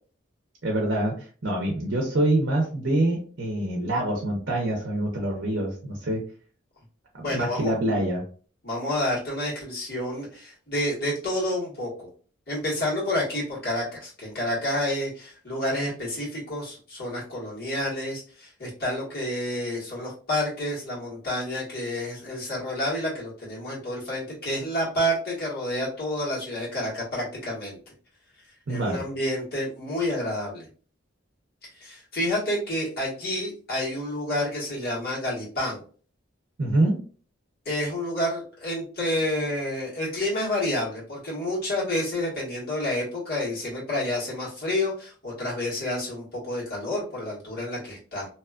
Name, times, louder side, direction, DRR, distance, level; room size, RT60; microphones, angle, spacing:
voice 1, 0.6-1.1 1.4-6.2 7.1-8.2 28.7-29.0 36.6-36.9, right 1 dB, 60° right, 0 dB, 0.7 m, -25 dB
voice 2, 7.2-7.7 8.6-12.1 12.5-27.8 28.7-30.7 31.7-35.8 37.6-48.3, left 1 dB, 50° left, -5 dB, 1.5 m, -29 dB
2.8 x 2.3 x 2.3 m, 0.40 s
head